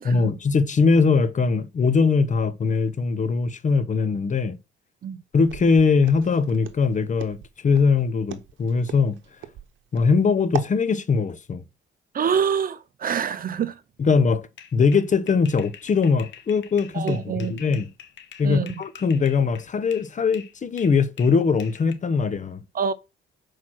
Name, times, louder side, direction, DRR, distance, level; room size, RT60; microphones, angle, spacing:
voice 1, 0.0-4.6 5.3-7.4 7.6-9.2 9.9-11.6 14.0-17.9 18.4-22.6, left 5 dB, 40° left, 0.9 m, -21 dB
Walk footsteps, 5.4-10.8, right 10 dB, 75° right, 0.9 m, -37 dB
voice 2, 12.1-13.7 16.9-17.6 18.4-18.8 22.7-22.9, right 7 dB, 45° right, 0.7 m, -26 dB
sound 1, 14.6-20.1 20.3-21.9, left 9 dB, 70° left, 1.2 m, -45 dB
6.1 x 4.7 x 5.9 m
cardioid pair, 90°, 20 cm